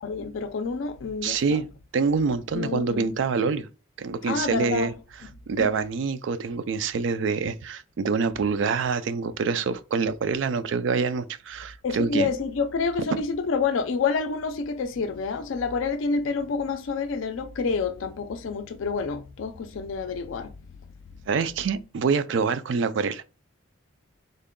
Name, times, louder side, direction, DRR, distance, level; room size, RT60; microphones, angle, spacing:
voice 1, 0.0-1.6 2.5-3.2 4.2-4.9 5.6-5.7 11.8-20.5 21.2-21.3, left 4 dB, 75° left, 0.4 m, -28 dB
voice 2, 1.2-1.7 1.9-3.7 4.0-4.9 5.5-12.3 13.1-13.2 21.3-23.2, right 5 dB, 65° right, 0.3 m, -26 dB
3.8 x 2.2 x 3.6 m
head